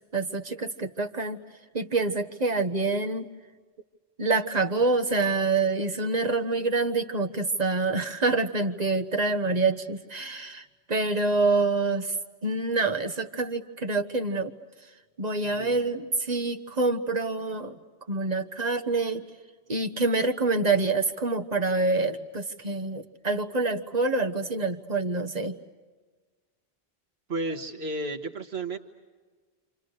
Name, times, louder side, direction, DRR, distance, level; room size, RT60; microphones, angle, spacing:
voice 1, 0.1-1.4 1.7-3.3 4.2-12.1 12.4-14.5 15.2-17.8 18.1-19.2 19.7-25.6, right 3 dB, 40° right, 6 dB, 1.3 m, -26 dB
voice 2, 27.3-28.8, right 2 dB, 75° right, 4 dB, 1.7 m, -32 dB
29.0 x 27.5 x 6.5 m, 1.4 s
omnidirectional pair, 1.1 m